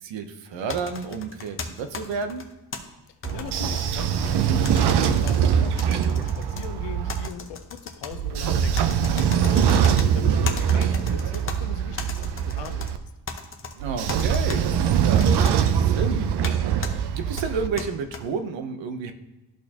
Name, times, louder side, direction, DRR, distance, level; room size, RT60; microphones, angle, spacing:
voice 1, 0.0-2.4 9.5-10.0 13.8-16.6 17.1-19.1, right 5 dB, 90° right, 8 dB, 0.8 m, -31 dB
sound 1, 0.7-2.8 3.2-4.4 4.7-5.4 5.8-6.7 7.1-8.1 8.8-10.1 10.5-11.6 12.0-12.9 13.3-13.7 14.1-14.6 15.2-15.6 16.4-16.5 16.8-16.9 17.4-18.2, left 4 dB, 30° left, 0.7 m, -35 dB
Train / Sliding door, 3.2-7.3 8.1-13.0 13.8-17.7, right 8 dB, 65° right, 0.6 m, -22 dB
voice 2, 3.3-12.9, left 8 dB, 75° left, 10 dB, 0.8 m, -40 dB
13.0 x 4.4 x 2.9 m, 1.1 s
cardioid pair, 145°, 43 cm